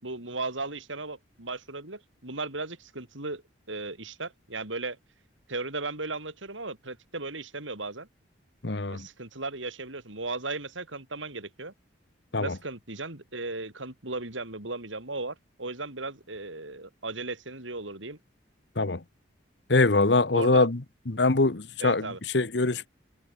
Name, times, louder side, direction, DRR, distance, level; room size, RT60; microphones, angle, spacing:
voice 1, 0.0-3.4 3.7-5.0 5.5-8.1 8.9-11.7 12.4-18.2 20.3-20.7 21.8-22.2, right 3 dB, 85° right, 5.1 m, -36 dB
voice 2, 8.6-9.1 12.3-12.5 18.8-19.0 19.7-20.8 21.1-22.1 22.3-22.9, left 3 dB, 60° left, 1.1 m, -23 dB
head